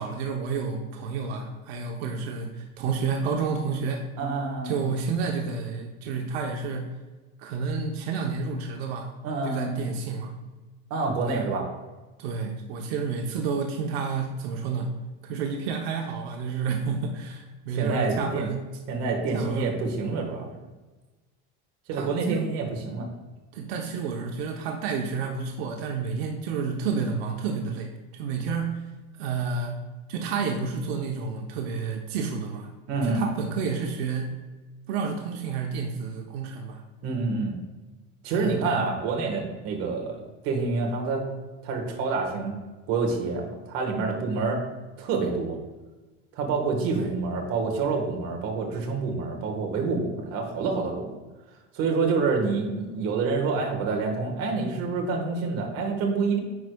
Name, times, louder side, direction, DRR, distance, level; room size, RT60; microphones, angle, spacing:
voice 1, 0.0-4.1 4.6-6.9 7.4-9.1 9.4-10.3 11.2-11.5 12.2-14.9 15.2-18.7 19.3-19.7 21.9-22.4 23.5-28.8 29.2-29.8 30.1-32.7 33.0-34.4 34.9-36.8 38.3-38.8 44.3-44.5 47.0-47.1, right 5 dB, 90° right, 2 dB, 0.8 m, -30 dB
voice 2, 4.2-4.8 9.2-9.8 10.9-11.7 17.8-18.5 18.9-20.5 21.9-23.1 32.9-33.2 37.0-37.5 38.2-40.2 40.4-41.3 41.6-42.6 42.9-44.6 45.0-45.6 46.3-51.2 51.7-56.4, right 4 dB, 50° right, 1 dB, 1.3 m, -27 dB
9.5 x 4.7 x 2.2 m, 1.2 s
cardioid pair, 160°, 30 cm